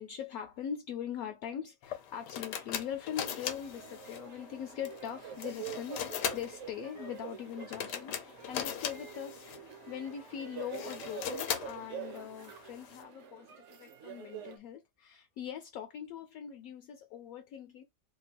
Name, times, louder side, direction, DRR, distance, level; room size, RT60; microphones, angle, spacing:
voice 1, 0.0-9.5 9.9-17.8, left 9 dB, 70° left, 0.9 m, -42 dB
sound 1, 1.8-13.0, left 9 dB, 90° left, 1.3 m, -40 dB
sound 2, 3.2-14.6, right 8 dB, 55° right, 1.0 m, -46 dB
2.9 x 2.2 x 4.2 m
omnidirectional pair, 1.7 m